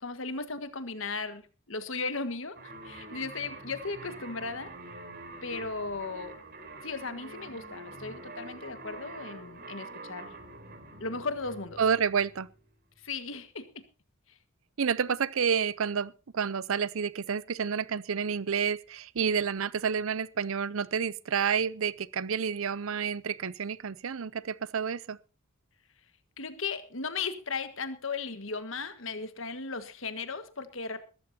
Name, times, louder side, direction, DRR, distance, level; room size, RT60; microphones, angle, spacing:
voice 1, 0.0-4.7 5.4-6.4 6.8-10.3 11.0-11.8 13.0-13.8 14.3-14.4 26.4-31.1, left 4 dB, 65° left, 1.6 m, -36 dB
sound 1, 2.5-12.7, right 2 dB, 50° right, 3.8 m, -46 dB
voice 2, 11.8-12.5 14.8-25.2, right 6 dB, 70° right, 0.6 m, -29 dB
21.5 x 14.0 x 2.8 m
head